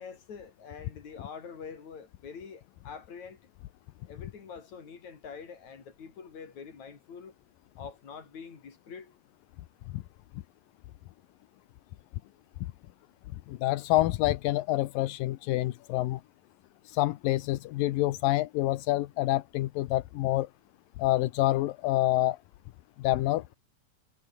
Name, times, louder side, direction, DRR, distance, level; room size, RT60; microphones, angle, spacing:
voice 1, 0.0-3.5 4.0-7.3 7.8-9.1, left 6 dB, 55° left, 5.0 m, -45 dB
voice 2, 13.5-16.2 16.9-20.5 21.0-22.4 23.0-23.4, left 17 dB, 85° left, 2.6 m, -27 dB
omnidirectional pair, 3.9 m